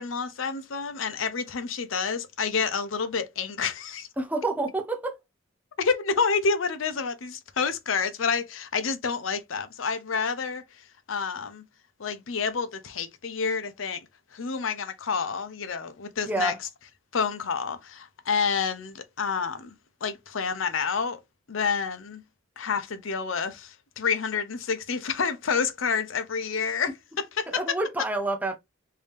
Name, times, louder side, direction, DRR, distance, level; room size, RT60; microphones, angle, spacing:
voice 1, 0.0-4.1 5.8-10.6 11.1-11.6 12.0-14.0 14.3-16.5 17.1-19.7 20.0-21.2 21.5-22.2 22.6-26.9 27.2-27.8, left 5 dB, 85° left, 0.7 m, -28 dB
voice 2, 4.2-5.2 16.3-16.6 27.5-28.6, right 2 dB, 10° right, 0.6 m, -28 dB
3.4 x 2.7 x 3.4 m
head